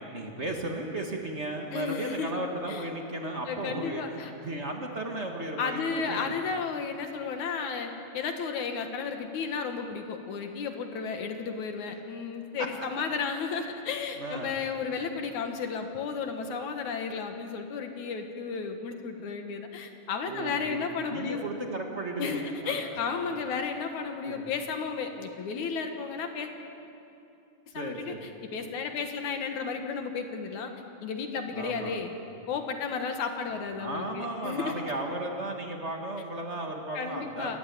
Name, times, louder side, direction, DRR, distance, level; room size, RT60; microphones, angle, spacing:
voice 1, 0.1-6.3 14.2-14.6 20.3-22.8 24.2-24.4 27.7-28.3 31.5-32.0 33.8-37.6, right 2 dB, 45° right, 2 dB, 0.9 m, -35 dB
voice 2, 1.7-2.3 2.7-2.9 3.5-4.3 5.6-21.4 22.2-26.5 27.7-30.7 31.0-32.1 32.5-34.7 36.9-37.6, left 5 dB, 60° left, 5 dB, 2.6 m, -33 dB
27.5 x 14.5 x 9.5 m, 2.8 s
omnidirectional pair, 4.1 m